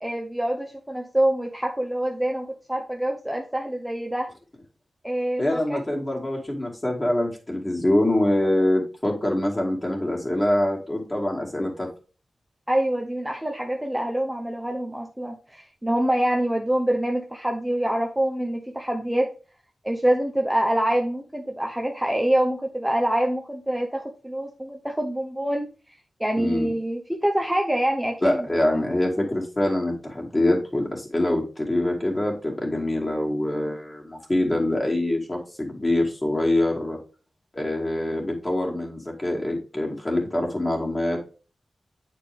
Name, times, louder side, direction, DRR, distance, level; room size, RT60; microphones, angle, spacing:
voice 1, 0.0-4.3 5.0-6.0 12.7-19.3 19.8-25.7 26.2-28.8, right 1 dB, 5° right, 1 dB, 0.7 m, -25 dB
voice 2, 5.4-11.9 26.4-26.7 28.2-37.0 37.5-41.4, left 1 dB, 20° left, -1 dB, 2.3 m, -24 dB
9.0 x 4.4 x 3.4 m, 0.35 s
wide cardioid pair, 140°, 0 cm